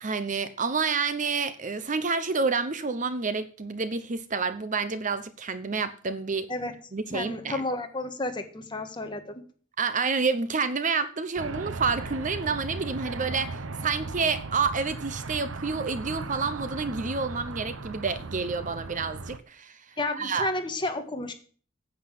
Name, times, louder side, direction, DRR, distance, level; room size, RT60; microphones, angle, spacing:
voice 1, 0.0-6.5 6.9-7.6 9.8-20.5, right 4 dB, 40° right, 0.8 m, -29 dB
voice 2, 7.1-9.4 20.0-21.3, left 2 dB, 25° left, 1.6 m, -31 dB
sound 1, 11.4-19.4, right 3 dB, 85° right, 0.8 m, -37 dB
9.7 x 8.0 x 7.8 m
head